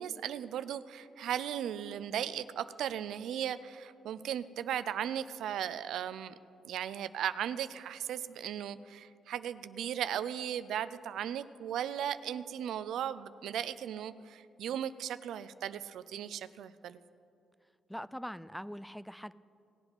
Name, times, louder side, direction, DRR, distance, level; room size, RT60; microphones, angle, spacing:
voice 1, 0.0-6.3 6.6-17.0, right 10 dB, 85° right, 14 dB, 0.4 m, -37 dB
voice 2, 17.9-19.3, equal, ahead, 17 dB, 0.3 m, -42 dB
18.0 x 7.9 x 6.1 m, 2.5 s
cardioid pair, 85°, 0 cm